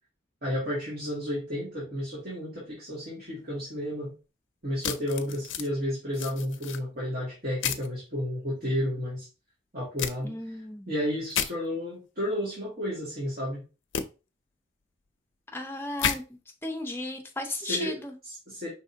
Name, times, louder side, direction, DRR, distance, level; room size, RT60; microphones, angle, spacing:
voice 1, 0.4-4.1 4.6-9.3 9.7-10.6 10.9-13.6 17.6-18.0 18.2-18.7, equal, 50° right, 2.1 m, -32 dB
sound 1, 4.8-5.7 6.1-6.8 7.6-7.9 10.0-10.1 11.3-11.5 13.9-14.0 16.0-16.2, left 8 dB, 85° left, 0.5 m, -30 dB
voice 2, 10.2-10.9 15.5-16.2 16.6-18.1, left 2 dB, 10° left, 0.6 m, -34 dB
5.3 x 3.6 x 2.8 m
head